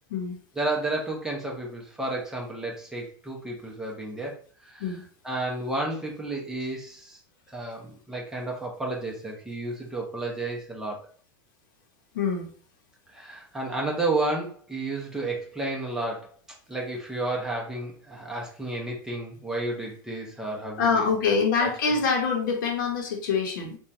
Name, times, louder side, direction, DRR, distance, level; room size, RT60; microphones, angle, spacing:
voice 1, 0.6-4.4 4.7-4.9 5.2-7.2 7.5-11.0 13.1-16.3 16.7-21.1 21.6-21.9, right 2 dB, 5° right, -2 dB, 0.7 m, -31 dB
voice 2, 12.1-12.5 20.8-23.8, left 5 dB, 90° left, 1 dB, 0.8 m, -25 dB
2.9 x 2.2 x 2.5 m, 0.42 s
supercardioid pair, 150°, 11 cm